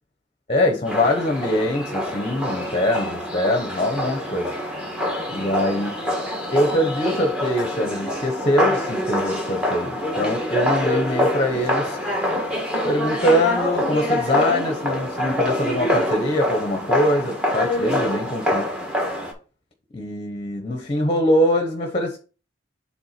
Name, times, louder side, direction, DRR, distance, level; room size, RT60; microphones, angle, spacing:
voice 1, 0.5-4.5 5.3-5.9 6.5-12.4 12.8-18.7 19.9-22.2, left 1 dB, 30° left, 0.9 m, -23 dB
sound 1, 0.9-19.3, left 1 dB, 5° right, 1.6 m, -25 dB
7.7 x 3.5 x 4.3 m
head